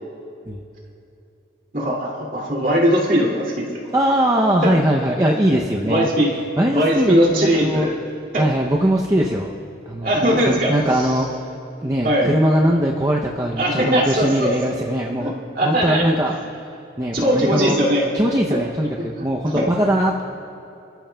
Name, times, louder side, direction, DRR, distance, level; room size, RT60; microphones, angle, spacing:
voice 1, 1.7-3.7 4.6-4.8 5.9-6.3 6.7-8.0 8.3-8.5 10.0-11.1 12.0-12.3 13.6-14.5 15.1-16.1 17.1-18.1 18.5-18.6 19.0-19.7, equal, 45° right, -3 dB, 2.4 m, -20 dB
voice 2, 3.9-6.1 6.6-7.9 8.4-9.5 9.9-11.3 11.8-15.3 15.6-16.4 17.0-17.8 18.1-20.2, right 1 dB, 20° right, -1 dB, 0.6 m, -20 dB
28.0 x 14.0 x 2.3 m, 2.7 s
head